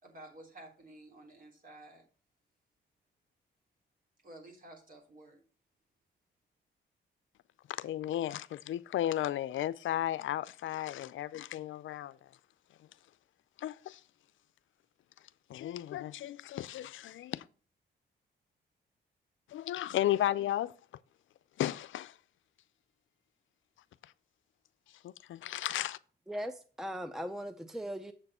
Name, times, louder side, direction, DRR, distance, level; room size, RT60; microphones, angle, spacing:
voice 1, 0.0-2.0 4.2-5.4, right 1 dB, 45° right, 3.4 m, -52 dB
voice 2, 7.7-12.3 13.6-14.0 15.5-17.5 19.5-20.7 21.6-22.2 24.0-24.1 25.0-26.0, left 12 dB, 75° left, 0.5 m, -34 dB
voice 3, 26.3-28.1, equal, ahead, 0.6 m, -39 dB
7.5 x 6.7 x 4.2 m
cardioid pair, 85°, 20 cm